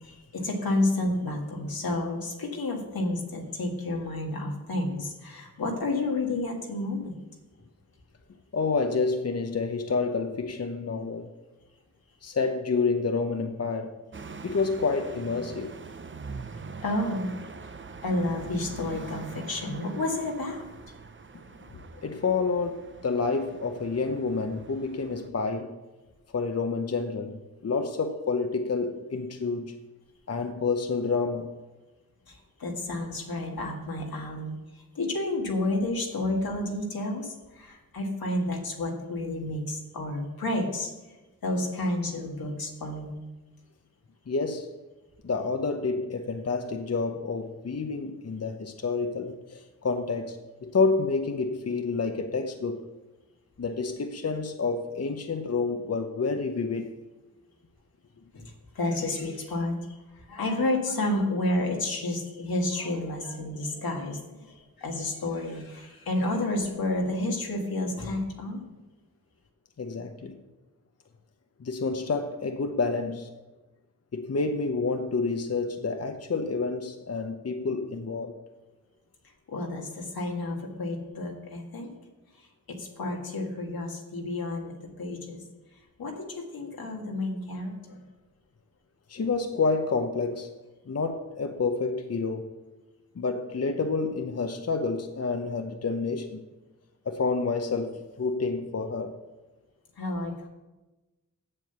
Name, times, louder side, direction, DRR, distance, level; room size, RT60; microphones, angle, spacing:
voice 1, 0.0-7.2 16.8-17.3 18.0-20.7 32.3-34.6 35.0-40.9 41.4-43.1 58.3-58.4 58.8-60.0 60.3-68.6 79.5-81.9 82.7-85.4 86.0-88.0 100.0-100.5, left 2 dB, 85° left, 1.9 m, -30 dB
voice 2, 8.5-11.3 12.2-14.0 14.4-15.7 21.7-25.8 26.3-29.8 30.3-31.5 44.3-44.7 45.2-52.9 53.6-57.0 69.8-70.4 71.6-73.3 74.1-78.3 89.1-90.5 90.9-92.5 93.2-96.4 97.0-99.2, left 4 dB, 45° left, 0.8 m, -29 dB
sound 1, 14.1-25.3, right 4 dB, 35° right, 0.7 m, -44 dB
7.7 x 7.6 x 6.8 m
cardioid pair, 55°, 35 cm